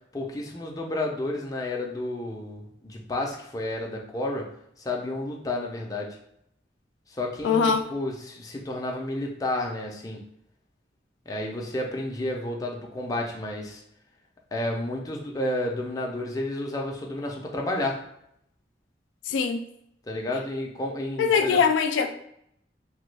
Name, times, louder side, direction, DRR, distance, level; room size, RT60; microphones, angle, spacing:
voice 1, 0.1-4.5 4.8-6.2 7.1-10.2 11.3-13.8 14.5-18.0 20.0-21.6, left 1 dB, 20° left, -1 dB, 0.5 m, -31 dB
voice 2, 7.4-7.8 19.3-19.6 21.2-22.1, left 6 dB, 85° left, 6 dB, 0.3 m, -22 dB
3.0 x 2.2 x 3.2 m, 0.74 s
head